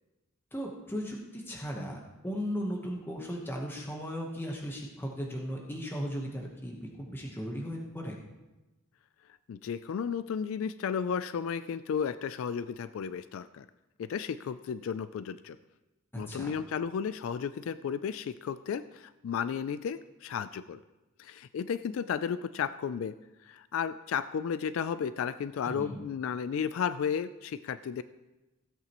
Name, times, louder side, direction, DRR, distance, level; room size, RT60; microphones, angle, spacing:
voice 1, 0.5-8.2 16.1-16.5 25.6-26.0, equal, 10° left, -1 dB, 1.1 m, -36 dB
voice 2, 9.5-13.7 14.0-15.6 16.1-20.8 21.2-23.1 23.4-28.0, left 7 dB, 65° left, 14 dB, 0.3 m, -33 dB
16.0 x 8.3 x 3.0 m, 1.1 s
head